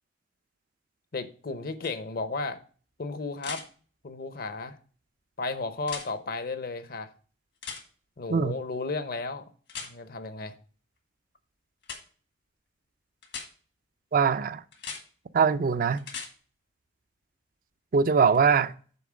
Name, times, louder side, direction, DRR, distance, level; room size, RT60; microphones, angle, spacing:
voice 1, 1.1-2.6 3.0-3.6 4.0-4.8 5.4-7.1 8.2-9.4 9.8-10.5, left 3 dB, 55° left, 0.7 m, -34 dB
sound 1, 1.8-1.9 3.4-3.6 5.8-6.1 7.6-7.8 9.7-9.9 11.8-12.0 13.2-13.5 14.7-15.0 16.0-16.3 18.3-18.4, left 6 dB, 75° left, 1.8 m, -38 dB
voice 2, 14.1-14.6 15.3-16.0 17.9-18.7, right 5 dB, 50° right, 0.4 m, -22 dB
7.0 x 4.3 x 6.2 m
head